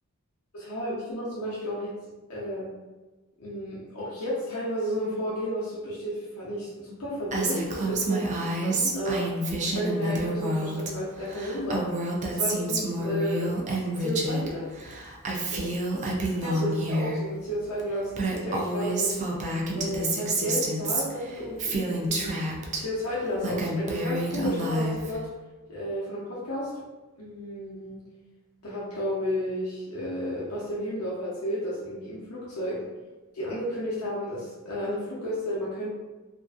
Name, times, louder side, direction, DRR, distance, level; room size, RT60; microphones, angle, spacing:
voice 1, 0.5-1.9 2.3-2.7 3.4-9.3 9.7-13.5 14.0-14.7 15.5-15.7 16.4-19.2 19.7-22.3 22.8-25.3 25.7-26.7 27.2-28.0 28.6-32.8 33.3-35.9, equal, 75° left, -6 dB, 0.6 m, -32 dB
Female speech woman speaking, 7.3-10.9 11.2-14.5 14.8-17.2 17.8-17.9 18.1-22.8 23.2-25.2, right 2 dB, 35° right, 0.4 m, -29 dB
2.5 x 2.4 x 2.3 m, 1.2 s
head